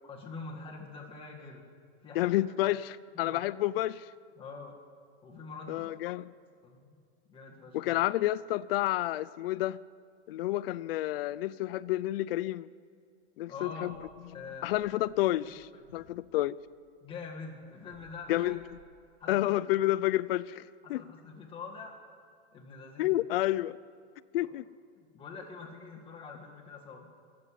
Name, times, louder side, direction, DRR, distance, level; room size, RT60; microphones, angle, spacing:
voice 1, 0.1-1.7 2.0-2.4 3.1-3.4 4.4-4.8 5.2-5.9 6.6-7.0 7.3-7.9 13.5-13.9 14.3-14.7 15.4-15.8 17.0-18.6 19.2-19.5 20.8-22.0 22.5-23.2 24.4-24.5 25.0-27.1, left 4 dB, 15° left, 1.8 m, -45 dB
voice 2, 2.2-4.1 5.7-6.3 7.7-9.8 10.3-12.7 13.4-14.0 14.6-16.6 18.3-18.6 19.3-21.0 23.0-23.8 24.3-24.6, left 15 dB, 60° left, 0.4 m, -30 dB
sound 1, 13.9-18.8, right 2 dB, 50° right, 5.7 m, -61 dB
18.5 x 7.8 x 10.0 m
supercardioid pair, 155°, 34 cm